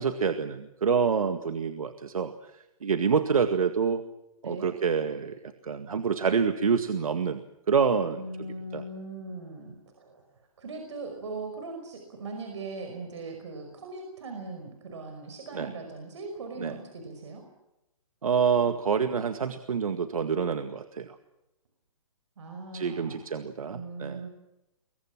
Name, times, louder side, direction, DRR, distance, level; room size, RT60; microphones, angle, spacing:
voice 1, 0.0-2.3 2.8-4.0 4.4-5.4 5.6-7.4 7.7-8.2 8.7-8.8 15.5-15.7 16.6-16.7 18.2-21.1 22.7-24.2, right 6 dB, 80° right, 8 dB, 1.9 m, -27 dB
voice 2, 4.4-4.7 8.1-10.2 10.6-17.4 22.4-23.2 23.7-24.3, right 3 dB, 55° right, 4 dB, 5.5 m, -39 dB
28.0 x 23.0 x 6.1 m, 0.94 s
hypercardioid pair, 170°, 18 cm